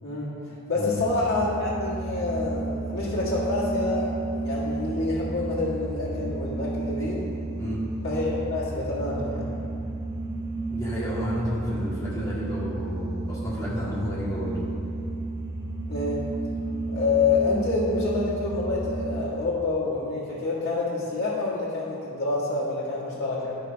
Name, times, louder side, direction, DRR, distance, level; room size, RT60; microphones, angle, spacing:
voice 1, 0.0-7.2 8.0-9.6 15.9-16.2 16.9-23.6, left 3 dB, 50° left, -10 dB, 1.8 m, -27 dB
voice 2, 0.7-1.0 7.5-7.8 10.7-14.6, equal, 15° left, -8 dB, 2.1 m, -31 dB
sound 1, 1.0-19.2, right 2 dB, 55° right, 1.1 m, -32 dB
11.0 x 5.4 x 5.2 m, 2.8 s
head